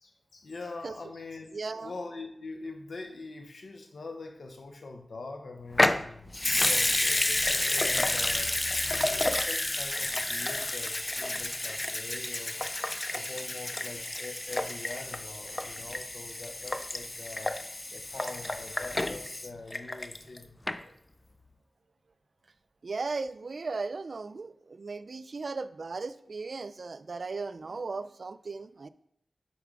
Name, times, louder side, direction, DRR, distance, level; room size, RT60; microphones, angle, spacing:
voice 1, 0.0-6.3 6.6-8.5 9.0-12.6 13.1-17.6 17.9-20.9, left 3 dB, 80° left, 4 dB, 0.7 m, -43 dB
voice 2, 1.5-1.9 22.8-28.9, right 4 dB, 65° right, 13 dB, 0.3 m, -36 dB
Water tap faucet / Sink (filling or washing) / Liquid, 5.7-20.4 20.7-20.8, left 1 dB, 25° left, 0.3 m, -30 dB
6.7 x 4.8 x 3.7 m, 0.72 s
wide cardioid pair, 100°, 0 cm